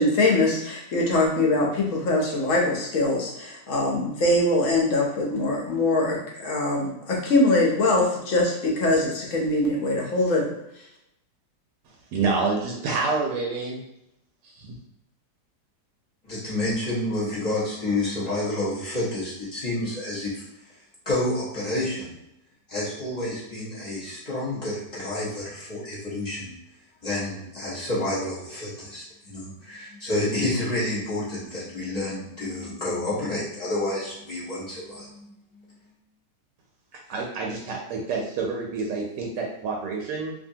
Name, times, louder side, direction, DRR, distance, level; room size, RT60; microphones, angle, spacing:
voice 1, 0.0-10.4, left 2 dB, 60° left, -2 dB, 0.9 m, -23 dB
voice 2, 12.1-13.8 14.4-14.7 37.1-40.3, right 4 dB, 85° right, -1 dB, 1.2 m, -28 dB
voice 3, 16.2-20.4 21.0-22.1 22.7-26.5 27.0-35.6, left 1 dB, 30° left, -8 dB, 0.9 m, -29 dB
2.7 x 2.6 x 2.7 m, 0.82 s
omnidirectional pair, 1.8 m